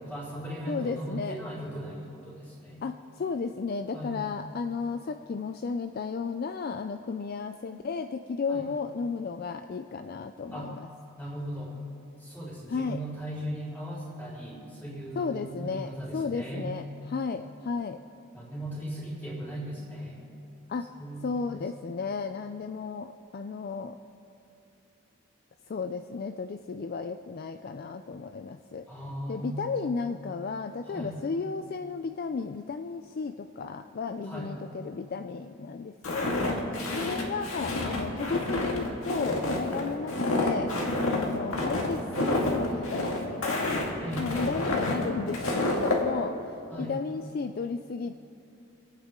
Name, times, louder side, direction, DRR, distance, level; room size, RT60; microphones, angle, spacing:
voice 1, 0.0-2.8 3.9-4.4 8.5-8.6 10.5-10.7 11.2-11.7 12.2-16.7 18.3-20.2 21.0-21.6 28.9-29.7 30.8-31.1 34.2-34.5 44.0-44.5 46.7-46.9, equal, 10° left, -7 dB, 4.1 m, -38 dB
voice 2, 0.7-1.4 2.8-10.8 12.7-13.0 15.2-16.8 17.1-18.0 20.7-20.9 21.2-24.0 25.7-28.9 29.3-36.3 36.9-40.7 41.1-43.9 44.2-46.4 46.8-48.2, left 5 dB, 45° left, 8 dB, 0.3 m, -33 dB
Walk footsteps, 36.0-46.0, left 2 dB, 70° left, 1.9 m, -29 dB
27.0 x 9.1 x 3.7 m, 2.7 s
head